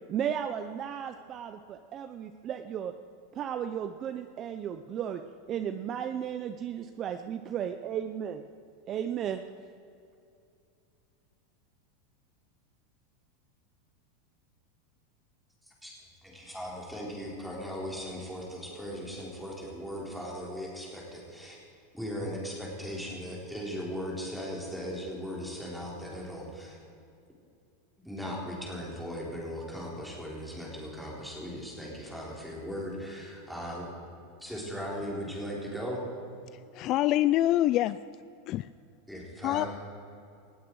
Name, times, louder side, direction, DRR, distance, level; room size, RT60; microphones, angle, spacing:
voice 1, 0.1-2.9 3.3-5.2 5.5-8.4 8.9-9.4, right 9 dB, 30° right, 9 dB, 0.6 m, -34 dB
voice 2, 16.2-21.6 21.9-26.8 28.0-33.9 34.4-36.1 39.1-39.7, equal, ahead, -4 dB, 4.1 m, -38 dB
voice 3, 36.5-38.0 38.5-38.7 39.4-39.7, left 14 dB, 40° left, 15 dB, 0.3 m, -26 dB
19.0 x 15.0 x 4.8 m, 2.5 s
supercardioid pair, 145°, 0 cm